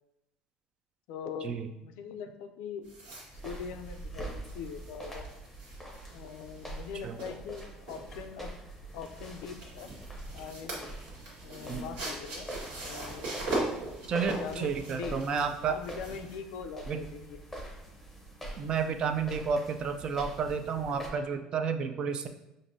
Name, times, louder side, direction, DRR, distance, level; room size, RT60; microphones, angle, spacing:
voice 1, 1.1-1.6 1.8-2.9 3.4-5.3 6.1-8.5 8.9-9.9 10.3-10.9 11.4-12.5 12.8-13.4 13.9-15.2 15.6-17.4, left 7 dB, 85° left, 7 dB, 0.4 m, -42 dB
sound 1, 2.8-16.3, right 2 dB, 65° right, 1.5 m, -41 dB
sound 2, 3.3-21.1, right 1 dB, 5° left, 0.7 m, -45 dB
voice 2, 14.1-15.8 16.9-17.1 18.6-22.3, right 6 dB, 40° right, 8 dB, 0.3 m, -31 dB
5.2 x 2.6 x 2.6 m, 0.89 s
cardioid pair, 135°, 2 cm